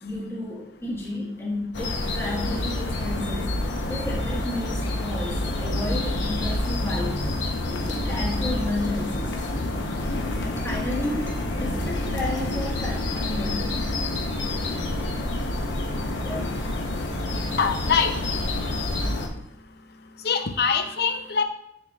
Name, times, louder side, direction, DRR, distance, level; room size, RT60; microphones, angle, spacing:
voice 1, 0.0-3.6 3.9-7.3 7.7-9.5 10.0-13.8 16.2-16.6, left 1 dB, 15° left, -4 dB, 1.6 m, -32 dB
sound 1, 1.7-19.3, left 1 dB, 80° left, 0.9 m, -28 dB
sound 2, 5.8-12.5, equal, 55° right, 1.0 m, -38 dB
voice 2, 17.6-18.2 20.2-21.4, left 6 dB, 60° left, 8 dB, 0.6 m, -23 dB
10.5 x 4.3 x 2.4 m, 0.76 s
head